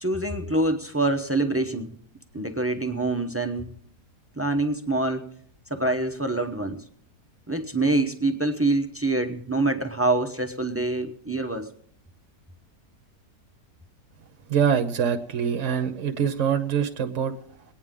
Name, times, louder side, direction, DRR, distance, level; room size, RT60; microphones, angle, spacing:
voice 1, 0.0-2.0 2.3-3.7 4.4-5.3 5.7-6.8 7.5-11.7, right 2 dB, 15° right, 7 dB, 0.4 m, -25 dB
voice 2, 14.5-17.6, right 7 dB, 55° right, 7 dB, 1.1 m, -25 dB
23.0 x 9.5 x 3.7 m, 0.62 s
omnidirectional pair, 1.8 m